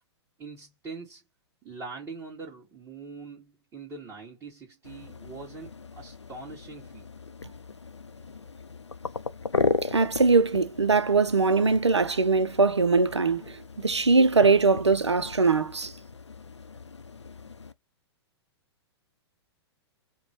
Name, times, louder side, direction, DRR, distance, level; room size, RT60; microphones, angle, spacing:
voice 1, 0.4-1.2 1.6-7.1, right 4 dB, 20° right, 1.9 m, -43 dB
sound 1, 4.8-17.7, left 4 dB, 85° left, 0.5 m, -36 dB
voice 2, 9.8-15.9, right 4 dB, 85° right, 0.5 m, -22 dB
5.0 x 2.2 x 3.0 m
figure-of-eight pair, 110°, 14 cm